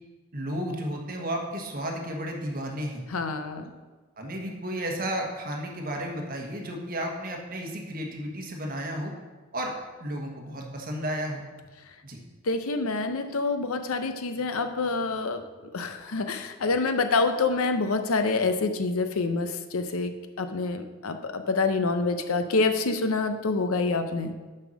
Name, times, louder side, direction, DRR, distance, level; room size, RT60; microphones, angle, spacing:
voice 1, 0.3-3.0 4.2-9.1 9.5-9.7 10.0-11.4 12.0-12.2, equal, 40° right, 1 dB, 1.3 m, -33 dB
voice 2, 3.1-3.7 12.4-15.4 15.7-20.1 20.4-24.3, left 3 dB, 85° left, 8 dB, 0.7 m, -27 dB
6.9 x 5.6 x 6.3 m, 1.3 s
head